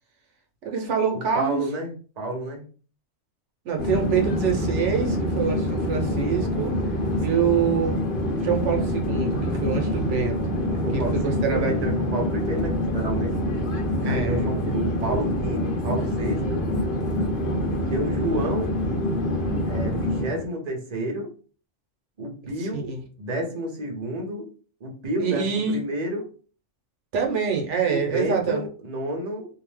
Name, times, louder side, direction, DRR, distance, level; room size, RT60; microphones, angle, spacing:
voice 1, 0.6-1.6 3.6-6.8 7.2-8.0 8.4-10.4 10.9-11.7 14.0-14.8 22.6-23.0 25.2-25.8 27.1-28.7, right 6 dB, 80° right, 2 dB, 1.0 m, -26 dB
voice 2, 1.1-2.6 10.6-13.3 14.0-16.6 17.9-18.8 19.7-21.3 22.2-22.9 23.2-24.5 24.8-26.3 27.8-29.5, right 1 dB, 40° right, 1 dB, 0.8 m, -30 dB
Conversation / Chatter / Fixed-wing aircraft airplane, 3.8-20.5, left 1 dB, 50° left, 0.8 m, -26 dB
2.7 x 2.1 x 3.1 m, 0.38 s
omnidirectional pair, 1.2 m